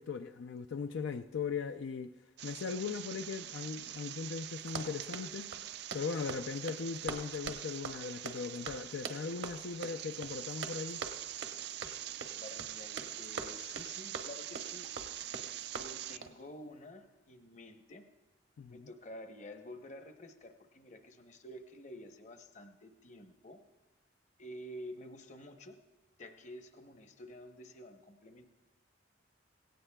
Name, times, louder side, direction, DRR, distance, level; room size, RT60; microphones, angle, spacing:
voice 1, 0.0-2.1 2.4-5.5 5.9-11.0 18.6-18.9, left 5 dB, 75° left, 8 dB, 0.4 m, -39 dB
sound 1, 2.4-16.2, right 12 dB, 60° right, 0.3 m, -44 dB
Run, 4.6-16.4, right 4 dB, 85° right, 1.0 m, -44 dB
voice 2, 12.4-14.9 15.7-18.1 18.7-23.6 24.4-25.8 26.2-28.5, left 1 dB, 40° left, 6 dB, 0.8 m, -50 dB
17.0 x 17.0 x 2.3 m, 1.2 s
head